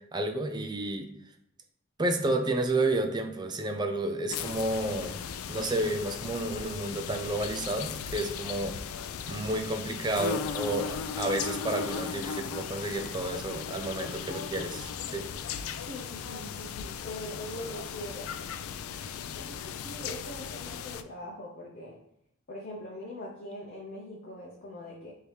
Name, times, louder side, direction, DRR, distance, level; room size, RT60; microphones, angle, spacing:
voice 1, 0.1-1.1 2.0-5.2 5.5-8.7 9.3-15.2, right 2 dB, 20° right, 5 dB, 0.4 m, -31 dB
sound 1, 4.3-21.0, left 7 dB, 75° left, 0.3 m, -37 dB
voice 2, 15.9-18.3 19.4-22.0 22.5-25.1, left 1 dB, 45° left, -3 dB, 0.7 m, -42 dB
3.3 x 2.8 x 4.6 m, 0.73 s
head